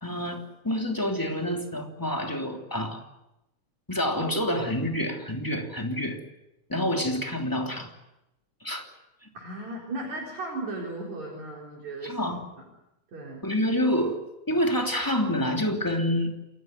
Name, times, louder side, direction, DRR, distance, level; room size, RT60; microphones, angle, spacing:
voice 1, 0.0-3.0 3.9-6.2 6.7-7.9 8.6-8.9 9.2-9.3 12.0-12.4 13.4-14.2 14.5-16.3, equal, 5° left, 2 dB, 2.8 m, -27 dB
voice 2, 9.3-12.2 13.1-13.5, right 2 dB, 65° right, -2 dB, 5.4 m, -36 dB
28.0 x 16.5 x 9.5 m, 0.92 s
omnidirectional pair, 3.5 m